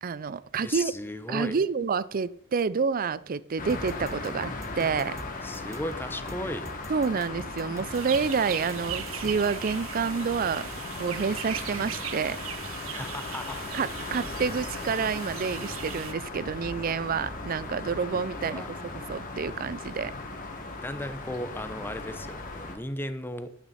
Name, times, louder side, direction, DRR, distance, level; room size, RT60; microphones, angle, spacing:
voice 1, 0.0-0.9 1.3-5.2 6.9-10.7 11.0-12.4 13.7-18.6 19.1-20.1, right 5 dB, 45° right, 0.5 m, -28 dB
voice 2, 0.6-1.6 5.4-6.7 12.9-13.7 18.1-18.7 20.8-23.5, left 1 dB, 10° left, 0.8 m, -36 dB
sound 1, 3.6-22.8, left 3 dB, 40° left, 1.9 m, -37 dB
sound 2, 3.7-9.6, right 1 dB, 15° right, 1.2 m, -45 dB
sound 3, 7.9-16.1, right 10 dB, 90° right, 0.9 m, -39 dB
11.5 x 9.2 x 4.2 m
head